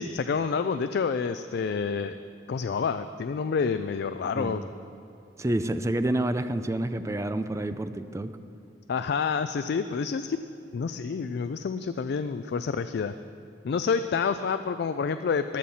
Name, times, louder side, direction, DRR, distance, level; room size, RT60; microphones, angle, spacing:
voice 1, 0.0-2.2 2.5-4.6 8.9-10.4 10.7-13.1 13.6-15.6, left 5 dB, 60° left, 10 dB, 0.3 m, -28 dB
voice 2, 4.4-4.7 5.4-8.3, right 1 dB, 15° right, 10 dB, 0.4 m, -28 dB
15.0 x 11.0 x 4.2 m, 2.7 s
head